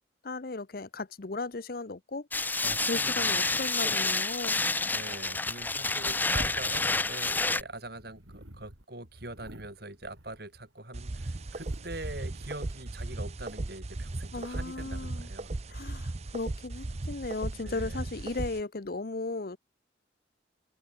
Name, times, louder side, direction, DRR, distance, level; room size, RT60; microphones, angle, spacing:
voice 1, 0.2-2.3 2.9-4.6 14.3-15.3 15.7-19.6, left 3 dB, 50° left, 0.8 m, -36 dB
sound 1, 2.3-7.6, left 3 dB, 10° left, 0.5 m, -29 dB
voice 2, 2.6-3.7 4.8-15.8 17.5-18.1, right 2 dB, 55° right, 5.8 m, -43 dB
sound 2, 6.0-10.8 11.2-13.6, right 1 dB, 85° right, 4.3 m, -53 dB
sound 3, 10.9-18.6, right 2 dB, 35° right, 0.6 m, -37 dB
head